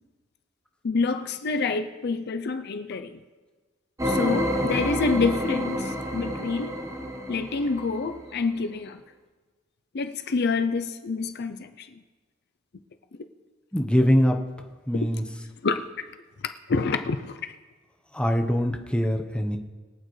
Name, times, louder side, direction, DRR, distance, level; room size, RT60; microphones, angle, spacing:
voice 1, 0.8-3.2 4.0-6.8 7.3-9.0 9.9-12.0 14.9-15.1 15.6-15.9 16.7-17.5, left 4 dB, 55° left, 0.5 m, -27 dB
sound 1, 4.0-8.3, equal, 15° right, 1.2 m, -29 dB
voice 2, 13.7-14.4 14.9-15.2 18.1-19.6, equal, 5° left, 0.9 m, -22 dB
22.5 x 8.8 x 3.2 m
head